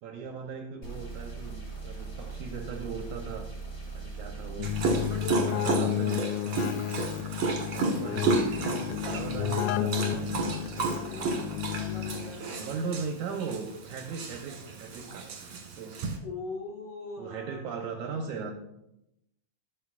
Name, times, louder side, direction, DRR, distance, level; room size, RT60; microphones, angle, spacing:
voice 1, 0.0-3.5 3.9-4.7 5.1-6.2 7.4-10.6 12.5-15.3 15.7-16.0 17.2-18.5, right 5 dB, 75° right, 3 dB, 1.8 m, -38 dB
sound 1, 0.8-5.2, right 4 dB, 25° left, 4.2 m, -40 dB
Keyboard (musical), 4.6-12.5, left 12 dB, 85° left, 2.4 m, -32 dB
Dog, 4.6-16.2, right 3 dB, 55° right, 1.7 m, -32 dB
voice 2, 4.9-6.3 9.3-9.9 10.8-13.0 16.2-18.4, left 3 dB, 65° left, -3 dB, 1.1 m, -42 dB
12.5 x 8.2 x 2.4 m, 0.84 s
omnidirectional pair, 4.2 m